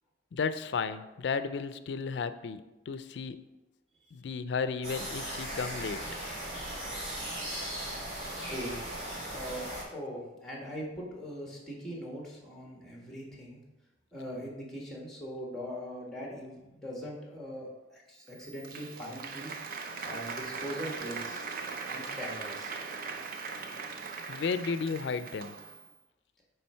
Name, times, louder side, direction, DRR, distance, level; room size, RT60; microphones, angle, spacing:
voice 1, 0.3-3.4 4.1-6.1 24.3-25.6, left 5 dB, 70° left, 12 dB, 0.4 m, -33 dB
sound 1, 4.8-9.8, right 1 dB, 40° right, 2.2 m, -38 dB
voice 2, 8.5-8.8 9.3-13.6 14.1-19.5 20.0-21.5 21.9-22.7, equal, ahead, -2 dB, 1.6 m, -41 dB
Applause, 18.3-25.9, right 4 dB, 55° right, 0.6 m, -40 dB
8.6 x 3.4 x 4.4 m, 1.0 s
head